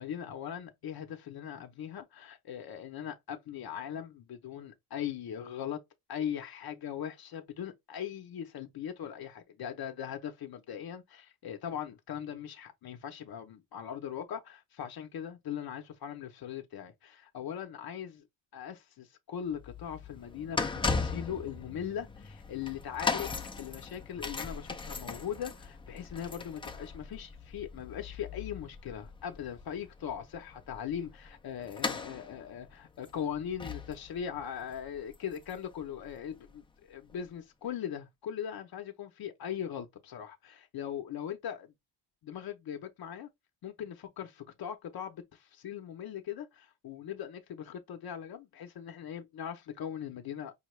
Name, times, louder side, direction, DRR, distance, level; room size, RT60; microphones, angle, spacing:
voice 1, 0.0-5.8 6.1-18.2 18.5-41.7 42.2-43.3 43.6-50.5, left 9 dB, 50° left, 0.7 m, -40 dB
sound 1, 19.5-36.5 37.1-37.2, left 4 dB, 10° left, 0.4 m, -38 dB
5.5 x 2.2 x 3.1 m
cardioid pair, 155°, 47 cm